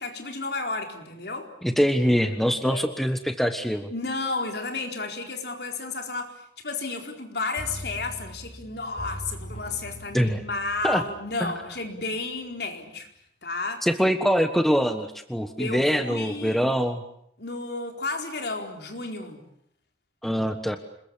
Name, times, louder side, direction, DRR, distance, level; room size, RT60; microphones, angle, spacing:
voice 1, 0.0-1.5 2.6-2.9 3.9-13.1 13.4-13.9 15.6-16.6 17.4-19.4, left 3 dB, 60° left, 4 dB, 4.4 m, -32 dB
voice 2, 1.6-3.9 10.1-10.4 10.8-11.0 11.4-11.5 13.8-17.0 20.2-20.8, equal, ahead, 7 dB, 1.3 m, -24 dB
sound 1, 7.6-12.3 12.6-12.7, equal, 35° left, 5.8 m, -41 dB
27.5 x 21.5 x 8.6 m, 0.71 s
head